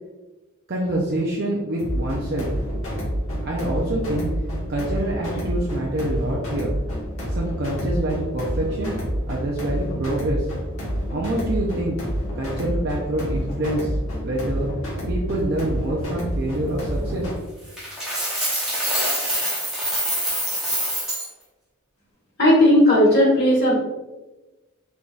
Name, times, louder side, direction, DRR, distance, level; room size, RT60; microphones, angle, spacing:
voice 1, 0.7-2.5 3.4-4.3 4.7-6.7 7.3-8.9 9.3-10.5 11.1-12.0 12.3-14.0 14.2-14.7 15.1-17.3, right 1 dB, 50° right, -3 dB, 0.5 m, -26 dB
sound 1, 1.8-17.3, equal, 70° left, 1.4 m, -28 dB
Coin (dropping), 17.8-21.3, right 1 dB, ahead, 1.0 m, -25 dB
voice 2, 22.4-23.7, left 1 dB, 50° left, -5 dB, 1.4 m, -15 dB
3.9 x 3.4 x 2.4 m, 1.1 s
head